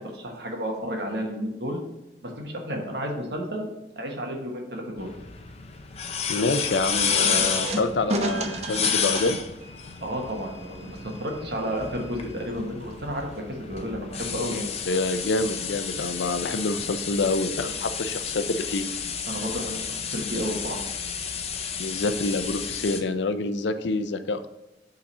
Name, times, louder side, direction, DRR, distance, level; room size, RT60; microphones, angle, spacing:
voice 1, 0.0-1.8 2.2-3.7 3.9-5.1 10.0-14.7 19.3-20.9, equal, 70° right, 1 dB, 1.5 m, -32 dB
sound 1, 5.0-23.0, left 7 dB, 35° left, 0.6 m, -31 dB
voice 2, 6.3-9.4 14.9-18.8 21.8-24.5, left 3 dB, 90° left, 10 dB, 0.6 m, -27 dB
sound 2, 6.9-13.4, right 2 dB, 40° right, 0.7 m, -34 dB
5.6 x 4.0 x 5.4 m, 1.0 s
head